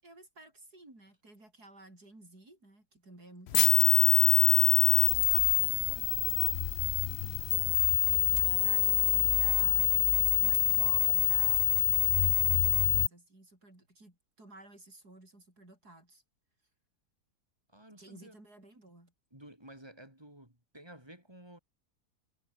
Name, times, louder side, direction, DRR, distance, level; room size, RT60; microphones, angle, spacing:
voice 1, 0.0-3.9 7.2-9.9 10.4-12.0 12.6-16.2 18.0-19.1, right 2 dB, 75° right, 8.3 m, -55 dB
sound 1, 3.5-13.1, left 12 dB, 75° left, 0.6 m, -25 dB
voice 2, 4.2-6.2 17.7-18.4 19.3-21.6, right 1 dB, 15° right, 7.8 m, -53 dB
omnidirectional pair, 1.7 m